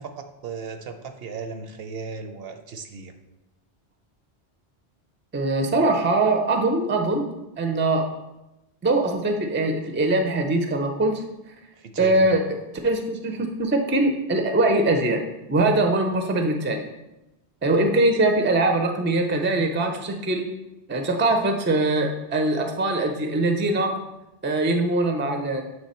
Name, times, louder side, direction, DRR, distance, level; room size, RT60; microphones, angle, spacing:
voice 1, 0.0-3.1 11.8-12.3, right 5 dB, 65° right, 7 dB, 0.8 m, -36 dB
voice 2, 5.3-7.3 7.6-8.1 8.8-11.2 12.0-12.6 12.8-15.2 15.5-16.9 17.6-20.5 20.9-24.0 24.4-25.6, right 2 dB, 20° right, 5 dB, 0.3 m, -22 dB
7.8 x 3.3 x 4.2 m, 0.96 s
omnidirectional pair, 1.1 m